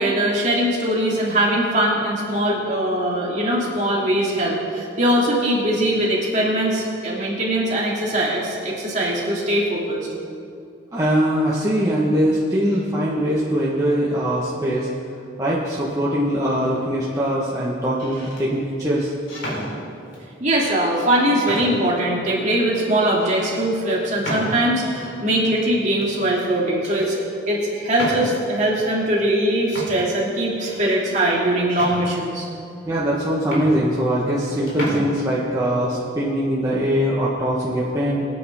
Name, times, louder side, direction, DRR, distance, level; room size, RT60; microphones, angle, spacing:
voice 1, 0.0-10.1 20.4-32.5, right 1 dB, 40° right, -4 dB, 2.8 m, -21 dB
voice 2, 10.9-14.9 15.4-19.1 32.8-38.3, equal, 15° right, -7 dB, 1.4 m, -22 dB
sound 1, 16.6-17.0 17.8-18.4 19.3-20.3 20.9-21.0 21.5-22.0 22.5-22.6 23.2-23.4 24.2-24.9 26.0-26.5 26.8-27.1 27.9-28.6 29.4-29.5 29.7-31.0 31.7-32.6 33.1-33.2 33.4-34.4 34.7-35.0, equal, 75° left, 3.6 m, -32 dB
22.5 x 9.1 x 3.7 m, 2.5 s
head